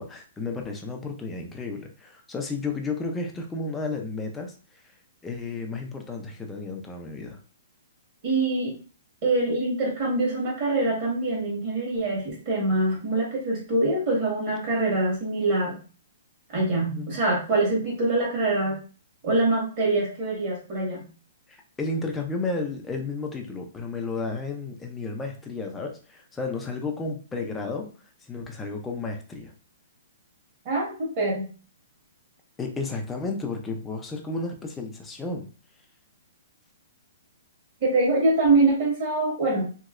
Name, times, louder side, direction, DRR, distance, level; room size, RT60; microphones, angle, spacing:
voice 1, 0.0-4.9 5.2-7.4 16.9-17.2 21.5-27.9 28.2-29.5 32.6-35.5, left 3 dB, 5° left, 2 dB, 0.4 m, -32 dB
voice 2, 8.2-8.8 9.2-15.8 16.5-18.8 19.2-21.1 30.6-31.5 37.8-39.6, right 2 dB, 35° right, -4 dB, 1.6 m, -24 dB
3.0 x 2.7 x 2.4 m, 0.38 s
hypercardioid pair, 170°, 0 cm